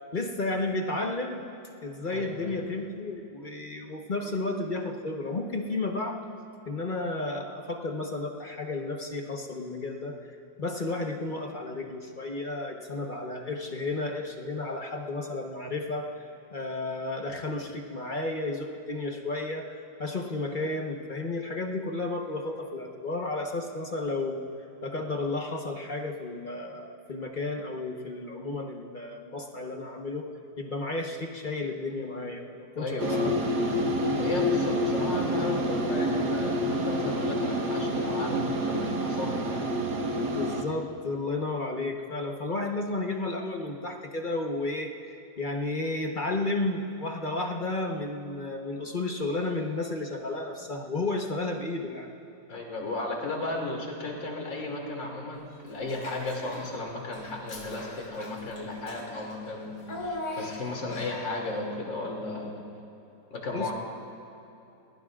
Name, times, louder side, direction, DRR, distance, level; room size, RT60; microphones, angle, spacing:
voice 1, 0.1-1.4 1.8-6.2 6.7-10.1 10.6-16.1 16.5-24.4 24.8-30.3 30.6-33.5 40.3-52.1 63.5-63.7, left 2 dB, 30° left, 2 dB, 1.0 m, -32 dB
voice 2, 2.1-2.5 32.8-33.3 34.2-39.7 52.5-62.6 63.3-63.7, left 2 dB, 80° left, -1 dB, 3.3 m, -35 dB
sound 1, 33.0-40.6, equal, 65° right, 1.9 m, -28 dB
Child speech kid speaking / Bathtub (filling or washing), 55.8-56.8 57.1-61.4, left 1 dB, 65° left, 2.9 m, -40 dB
29.5 x 19.0 x 2.5 m, 2.9 s
omnidirectional pair, 2.0 m